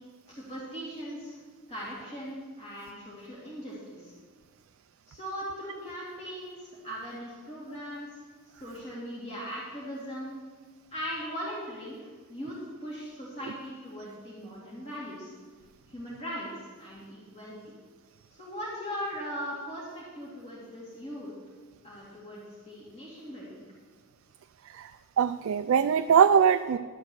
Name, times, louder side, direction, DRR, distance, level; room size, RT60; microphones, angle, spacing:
voice 1, 0.3-1.4 1.7-4.1 5.1-8.1 8.6-10.3 10.9-12.0 12.3-15.3 15.9-16.5 16.8-17.6 18.4-21.3 21.8-23.6, equal, 30° left, -7 dB, 2.3 m, -39 dB
voice 2, 25.2-26.8, right 7 dB, 60° right, 9 dB, 0.3 m, -22 dB
11.5 x 4.3 x 7.9 m, 1.5 s
head